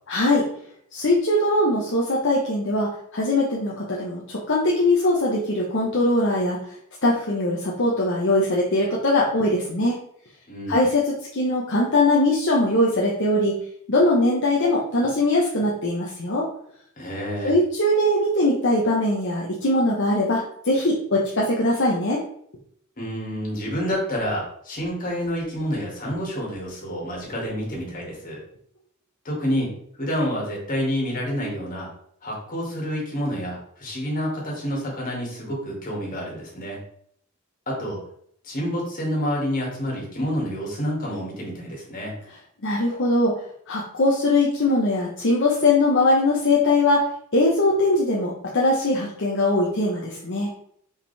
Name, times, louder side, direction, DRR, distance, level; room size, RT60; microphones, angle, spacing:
voice 1, 0.1-0.5 0.9-6.7 7.0-10.0 10.7-13.5 13.9-16.5 17.4-22.2 42.6-43.4 43.7-47.1 47.3-50.5, left 2 dB, 55° left, -4 dB, 1.1 m, -21 dB
voice 2, 10.5-10.9 17.0-17.6 23.0-28.4 29.2-29.7 30.0-31.9 32.2-36.8 37.7-38.0 38.4-42.1, equal, 40° left, -3 dB, 2.4 m, -28 dB
5.2 x 5.2 x 3.4 m, 0.66 s
head